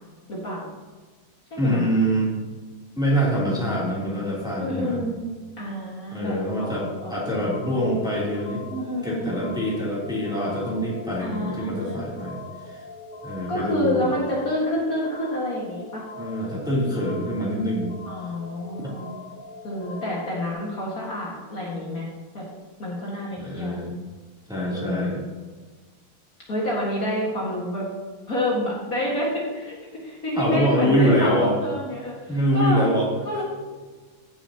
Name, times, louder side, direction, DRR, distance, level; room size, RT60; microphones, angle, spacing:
voice 1, 0.3-0.6 1.5-1.8 4.6-5.2 5.6-6.7 7.0-7.5 8.7-9.4 11.2-12.0 13.5-16.0 18.1-19.1 19.6-22.1 22.3-22.5 22.8-23.8 24.7-25.2 26.5-27.9 28.3-32.8 33.2-33.4, left 1 dB, 50° left, -5 dB, 2.1 m, -28 dB
voice 2, 1.6-2.3 2.9-5.0 6.1-8.6 9.0-12.4 12.7-12.8 13.2-14.1 16.2-18.0 18.8-18.9 23.4-24.0 24.5-25.2 30.4-31.6 32.3-33.1, equal, ahead, -6 dB, 2.8 m, -24 dB
sound 1, 6.6-20.5, left 3 dB, 70° left, 2.8 m, -41 dB
15.5 x 7.1 x 2.8 m, 1.4 s
omnidirectional pair, 2.1 m